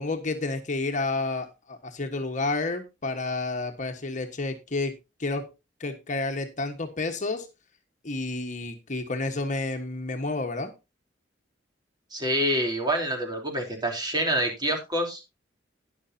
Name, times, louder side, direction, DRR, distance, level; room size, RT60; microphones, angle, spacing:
voice 1, 0.0-5.5 5.8-7.5 8.0-10.7, left 3 dB, 45° left, 5 dB, 1.4 m, -30 dB
voice 2, 12.1-15.2, right 1 dB, 25° right, 3 dB, 3.7 m, -27 dB
12.0 x 10.5 x 2.8 m, 0.25 s
head